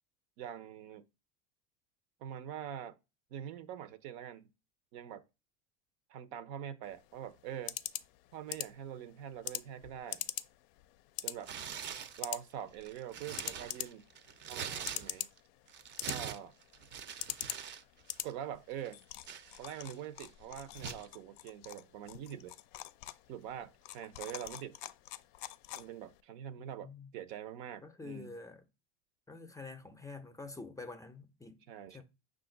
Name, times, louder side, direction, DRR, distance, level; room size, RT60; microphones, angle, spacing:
voice 1, 0.4-1.0 2.2-3.0 3.3-4.5 4.9-5.2 6.1-7.8 8.3-10.2 11.2-11.5 12.2-14.1 14.5-15.3 16.0-16.5 18.2-19.0 19.6-22.5 23.3-24.8 25.7-28.3 31.7-32.0, right 10 dB, 65° right, 0.7 m, -44 dB
sound 1, 6.8-26.2, left 15 dB, 60° left, 0.5 m, -45 dB
Tearing, 11.4-12.2 12.7-15.4 15.7-17.8 18.1-18.3 18.8-20.0 20.8-21.1, right 7 dB, 35° right, 0.6 m, -43 dB
voice 2, 26.6-27.1 27.8-28.6 29.3-31.6 31.9-32.0, left 3 dB, 10° left, 0.5 m, -47 dB
5.5 x 2.5 x 3.9 m
supercardioid pair, 105°, 34 cm